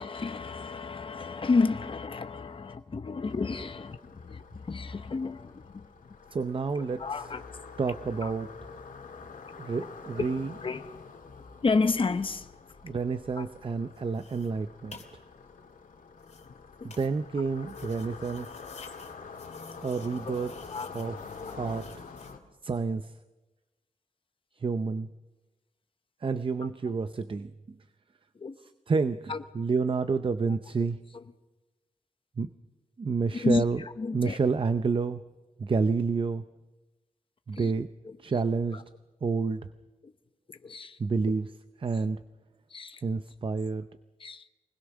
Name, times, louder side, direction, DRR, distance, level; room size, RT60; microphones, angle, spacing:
voice 1, 0.0-5.8 7.0-7.4 8.2-8.3 10.6-10.9 11.6-12.5 13.4-13.5 16.8-16.9 17.8-17.9 20.2-20.3 20.7-20.9 21.4-21.5 28.4-28.5 29.3-29.4 33.3-33.6 34.0-34.4 37.5-37.7 40.6-41.0 42.7-43.0 44.2-44.4, left 4 dB, 40° left, 1.0 m, -30 dB
sound 1, 3.2-22.4, left 5 dB, 85° left, 2.1 m, -47 dB
voice 2, 6.3-7.3 7.8-8.7 9.6-10.5 12.8-15.0 16.8-18.5 19.8-20.5 20.9-21.2 21.5-21.9 22.6-23.2 24.6-25.1 26.2-27.8 28.6-31.0 32.4-32.5 33.0-33.8 34.1-35.2 35.6-36.4 37.5-37.9 38.2-38.8 39.2-39.7 41.0-41.5 41.8-42.2 43.0-43.9, right 4 dB, 40° right, 0.6 m, -29 dB
sound 2, 13.9-22.3, left 4 dB, 55° left, 2.9 m, -53 dB
24.5 x 20.0 x 6.2 m
wide cardioid pair, 135°, 14 cm